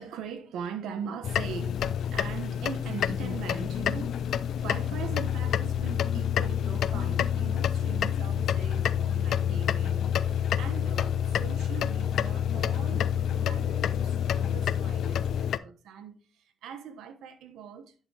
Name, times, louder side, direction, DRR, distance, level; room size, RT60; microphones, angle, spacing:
voice 1, 0.0-1.8 2.1-4.2 4.5-17.9, right 7 dB, 85° right, 1.0 m, -41 dB
sound 1, 1.2-15.6, left 9 dB, 70° left, 0.4 m, -28 dB
11.0 x 4.8 x 3.3 m
cardioid pair, 90°, 0 cm